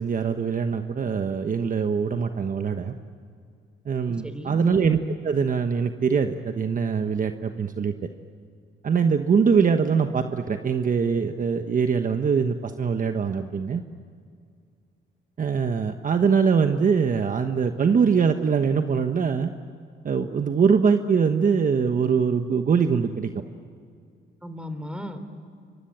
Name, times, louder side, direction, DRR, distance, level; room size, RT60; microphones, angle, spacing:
voice 1, 0.0-3.0 3.8-7.9 8.8-13.8 15.4-19.5 20.0-23.3, right 6 dB, 40° right, 7 dB, 1.3 m, -23 dB
voice 2, 4.0-4.6 24.4-25.2, left 1 dB, 5° right, 9 dB, 3.6 m, -36 dB
28.0 x 24.0 x 8.9 m, 2.3 s
cardioid pair, 90°, 20 cm